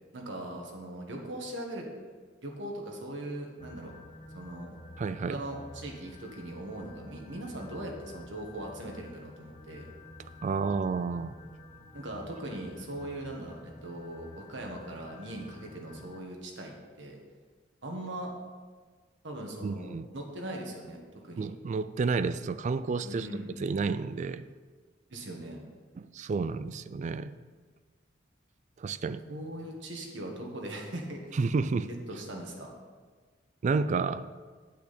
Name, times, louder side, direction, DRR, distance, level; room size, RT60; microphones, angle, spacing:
voice 1, 0.1-1.8 2.4-3.9 4.3-4.8 5.3-9.9 11.9-17.2 17.8-18.3 19.2-21.5 23.0-23.5 25.1-25.6 29.3-31.4 32.1-32.7, right 1 dB, 65° right, 1 dB, 1.5 m, -40 dB
sound 1, 3.6-16.2, left 1 dB, 30° left, 0.8 m, -50 dB
voice 2, 5.0-5.4 10.4-11.4 19.6-20.1 21.4-23.3 23.6-24.4 26.0-27.4 28.8-29.2 31.3-31.9 33.6-34.2, right 4 dB, 40° right, 14 dB, 0.3 m, -30 dB
8.7 x 8.3 x 4.2 m, 1.5 s
head